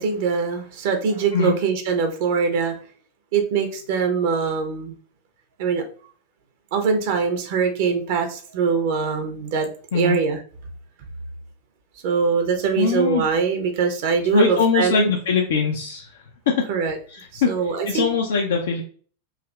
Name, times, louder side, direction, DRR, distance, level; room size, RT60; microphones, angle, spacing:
voice 1, 0.0-2.7 3.3-4.9 5.6-5.8 6.7-9.7 9.9-10.4 12.0-15.1 16.7-17.0 17.3-18.0, right 5 dB, 50° right, 5 dB, 0.8 m, -22 dB
voice 2, 12.8-13.2 14.3-16.1 16.5-16.6 17.1-17.5 17.9-18.8, left 5 dB, 60° left, 1 dB, 0.5 m, -21 dB
4.7 x 2.8 x 2.3 m, 0.43 s
figure-of-eight pair, 90°, 0 cm